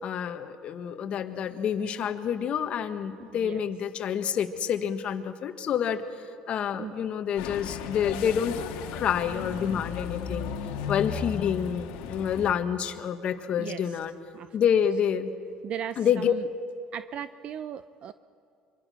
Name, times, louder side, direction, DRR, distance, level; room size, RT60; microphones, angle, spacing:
voice 1, 0.0-6.0 6.5-8.6 8.9-10.5 10.9-14.1 14.5-15.3 16.0-16.3, left 8 dB, 50° left, 8 dB, 1.4 m, -28 dB
voice 2, 3.3-3.6 6.8-6.9 13.6-14.0 14.3-14.6 15.6-16.5 16.9-18.1, right 9 dB, 50° right, 13 dB, 0.6 m, -37 dB
sound 1, 7.4-12.5, left 7 dB, 80° left, 1.7 m, -35 dB
25.0 x 24.5 x 6.4 m, 2.3 s
supercardioid pair, 100°, 2 cm